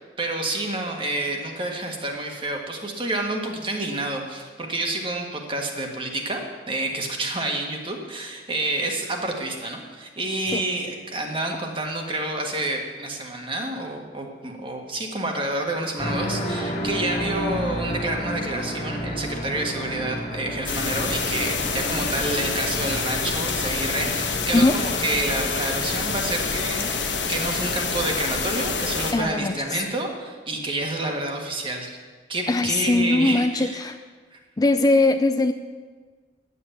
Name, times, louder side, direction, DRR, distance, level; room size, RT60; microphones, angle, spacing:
voice 1, 0.0-6.4 6.7-32.0 32.3-33.8 34.3-34.4, right 2 dB, 30° right, 2 dB, 1.6 m, -29 dB
sound 1, 16.0-27.7, equal, 40° left, 1.8 m, -32 dB
sound 2, 20.7-29.1, left 5 dB, 85° left, 1.3 m, -27 dB
voice 2, 29.1-29.8 32.5-34.0 34.6-35.5, left 2 dB, 20° left, 8 dB, 0.4 m, -21 dB
11.0 x 8.0 x 8.4 m, 1.5 s
head